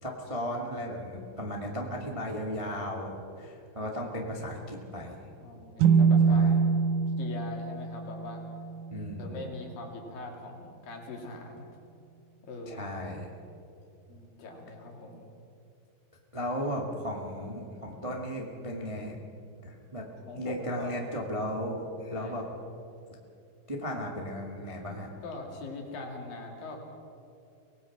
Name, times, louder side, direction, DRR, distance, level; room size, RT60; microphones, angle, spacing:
voice 1, 0.0-5.2 6.3-6.6 8.9-9.4 12.6-13.3 16.3-19.2 19.6-20.1 20.3-22.4 23.7-25.1, equal, 15° right, 0 dB, 1.1 m, -35 dB
voice 2, 5.4-6.5 7.2-8.4 9.2-11.7 12.4-12.9 14.1-15.3 20.2-20.9 22.1-22.4 25.2-26.8, left 2 dB, 70° left, 1 dB, 4.4 m, -41 dB
sound 1, 5.8-9.4, right 5 dB, 80° right, 2.2 m, -25 dB
24.5 x 19.5 x 6.1 m, 2.6 s
omnidirectional pair, 4.2 m